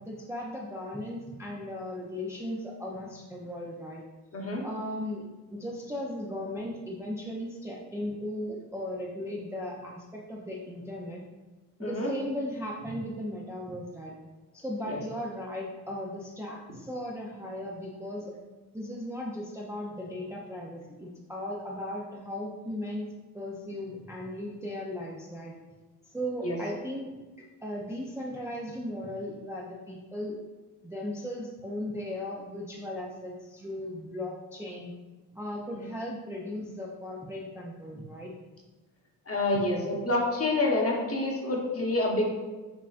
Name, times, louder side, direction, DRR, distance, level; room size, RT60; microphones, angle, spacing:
voice 1, 0.0-4.0 4.6-11.2 11.8-14.2 14.5-18.4 18.7-23.1 23.3-25.5 26.1-27.1 27.4-30.4 30.8-34.9 35.3-38.4, left 1 dB, 5° right, -3 dB, 0.5 m, -37 dB
voice 2, 4.3-4.6 11.8-12.1 14.9-15.0 26.4-26.6 39.3-42.3, left 2 dB, 35° left, -1 dB, 1.1 m, -27 dB
5.5 x 2.4 x 2.4 m, 1.2 s
supercardioid pair, 50°, 42 cm